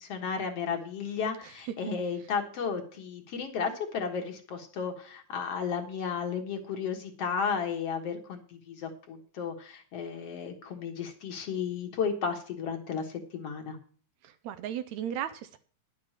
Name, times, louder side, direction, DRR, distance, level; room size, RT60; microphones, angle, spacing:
voice 1, 0.0-13.8, left 6 dB, 60° left, 4 dB, 2.2 m, -33 dB
voice 2, 1.4-1.7 14.2-15.6, right 10 dB, 75° right, 11 dB, 1.9 m, -36 dB
11.0 x 6.6 x 7.5 m, 0.43 s
omnidirectional pair, 3.5 m